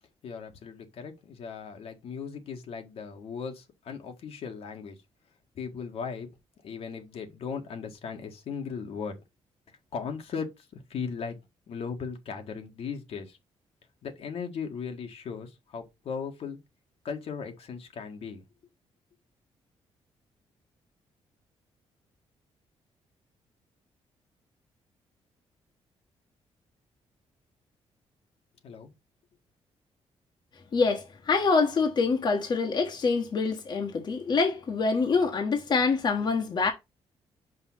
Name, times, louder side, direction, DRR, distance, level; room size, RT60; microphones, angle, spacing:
voice 1, 0.2-5.0 5.6-6.3 6.6-9.2 9.9-11.4 11.7-13.4 14.0-16.6 17.0-18.4 28.6-28.9, left 6 dB, 70° left, 1.8 m, -37 dB
voice 2, 30.7-36.7, left 4 dB, 45° left, 1.4 m, -25 dB
5.6 x 5.0 x 5.6 m
cardioid pair, 120°, 11 cm